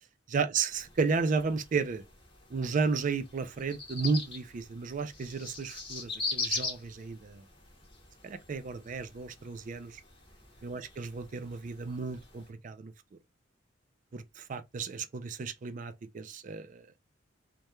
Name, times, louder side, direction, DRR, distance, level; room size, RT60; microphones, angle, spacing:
voice 1, 0.3-2.0 2.5-7.4 8.2-10.0 10.6-12.9 14.1-16.8, right 4 dB, 45° right, 0.4 m, -33 dB
sound 1, 0.7-12.5, left 4 dB, 30° left, 0.7 m, -42 dB
2.3 x 2.1 x 2.9 m
head